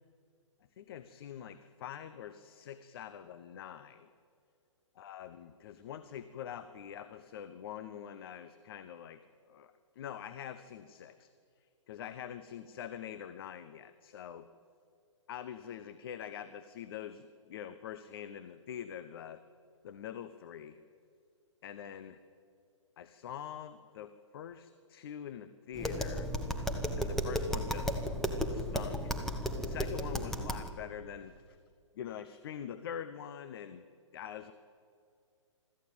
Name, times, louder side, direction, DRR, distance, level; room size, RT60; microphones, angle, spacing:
voice 1, 0.8-4.1 5.0-9.2 9.5-11.3 11.9-14.5 15.3-19.4 19.8-20.8 21.6-22.2 23.0-26.3 26.9-28.0 28.5-29.1 29.6-31.6 31.9-33.8 34.1-34.5, left 9 dB, 50° left, 11 dB, 1.0 m, -44 dB
Tap, 25.7-30.7, equal, ahead, 1.6 m, -34 dB
24.0 x 14.0 x 9.0 m, 2.3 s
figure-of-eight pair, 125°, 16 cm